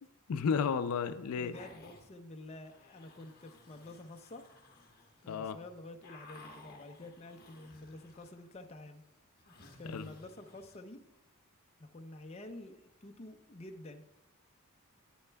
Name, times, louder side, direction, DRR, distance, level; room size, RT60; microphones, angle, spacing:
voice 1, 0.3-1.5 5.3-5.6 9.9-10.1, left 6 dB, 80° left, 11 dB, 0.4 m, -32 dB
voice 2, 1.3-4.5 5.2-9.0 9.7-11.0 11.8-14.1, left 2 dB, 30° left, 5 dB, 0.5 m, -49 dB
sound 1, 1.5-2.1 2.6-5.3 5.6-8.5 8.8-10.8, left 2 dB, 45° left, 1.3 m, -57 dB
10.0 x 9.9 x 2.2 m, 0.97 s
head